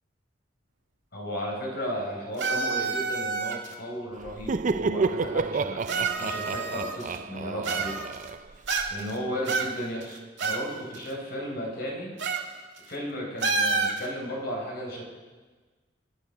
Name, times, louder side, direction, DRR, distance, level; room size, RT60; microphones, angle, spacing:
voice 1, 1.1-8.0 8.9-12.1 12.9-15.0, equal, 60° left, -1 dB, 4.5 m, -34 dB
sound 1, 2.4-3.7 4.7-4.8 5.9-7.2 7.6-8.3 8.7-9.1 9.5-10.7 10.9-11.0 12.2-12.5 12.8-12.9 13.4-14.1, right 4 dB, 75° right, 1.7 m, -28 dB
Laughter, 4.2-8.9, right 4 dB, 45° right, 0.4 m, -30 dB
25.5 x 9.2 x 5.6 m, 1.4 s
head